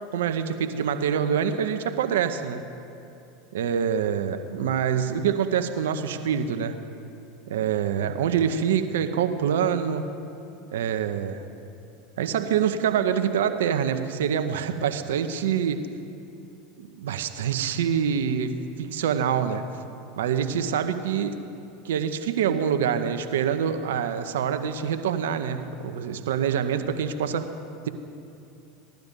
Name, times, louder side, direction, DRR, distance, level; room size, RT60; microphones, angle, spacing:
voice 1, 0.1-2.7 3.5-6.8 7.5-10.1 10.7-11.5 12.2-15.9 16.8-19.6 20.2-21.4 21.8-27.5, right 8 dB, 75° right, 9 dB, 0.8 m, -25 dB
16.5 x 11.5 x 5.3 m, 2.7 s
hypercardioid pair, 85°, 0 cm